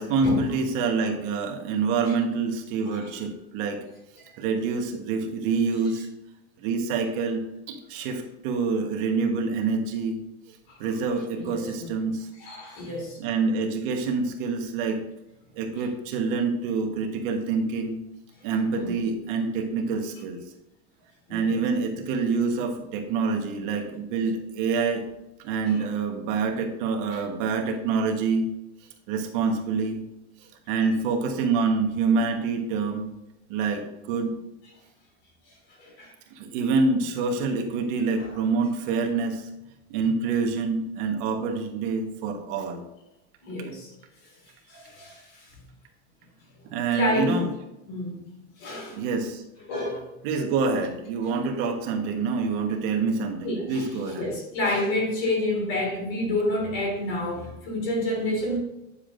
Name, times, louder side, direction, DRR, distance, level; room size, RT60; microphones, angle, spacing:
voice 1, 0.0-3.8 4.4-6.1 6.6-7.4 7.7-10.2 10.5-12.3 13.2-15.0 15.5-18.0 18.4-20.4 21.3-25.1 25.4-28.5 29.1-30.0 30.4-33.1 33.5-34.4 36.3-39.5 39.9-42.8 46.7-47.5 48.9-49.4 50.2-54.3, right 4 dB, 50° right, 3 dB, 1.3 m, -26 dB
voice 2, 11.4-11.9 12.4-13.2 18.8-18.9 21.3-21.6 25.7-25.8 27.1-27.2 35.8-36.1 38.2-38.3 43.4-43.9 44.7-45.5 46.9-47.4 47.9-48.2 48.6-49.0 49.7-50.1 53.4-53.9 54.2-58.6, left 1 dB, 40° left, 0 dB, 3.1 m, -29 dB
10.0 x 7.1 x 2.6 m, 0.92 s
supercardioid pair, 165°, 34 cm